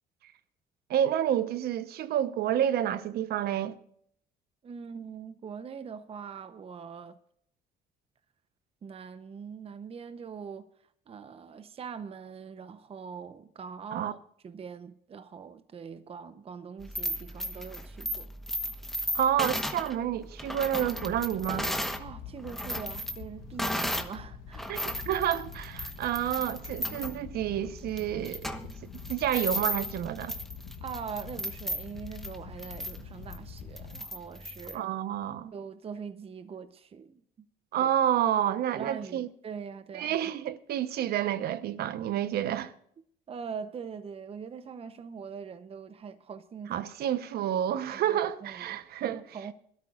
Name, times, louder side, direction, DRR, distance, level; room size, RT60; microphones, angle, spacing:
voice 1, 0.9-3.7 13.9-14.1 19.1-21.7 24.7-24.8 25.1-28.5 29.1-30.3 34.7-35.5 37.7-39.3 39.9-42.7 46.7-49.2, right 10 dB, 70° right, 1.0 m, -29 dB
voice 2, 4.6-7.2 8.8-10.7 11.1-18.3 22.0-24.8 30.8-34.9 35.5-37.2 37.8-37.9 38.7-40.2 43.3-46.9 47.9-49.5, right 6 dB, 35° right, 0.8 m, -42 dB
sound 1, 16.8-22.0 22.4-24.2 24.5-34.8, equal, ahead, 1.1 m, -35 dB
sound 2, 20.8-34.0, left 7 dB, 85° left, 1.5 m, -45 dB
22.0 x 13.0 x 2.5 m
cardioid pair, 110°, 17 cm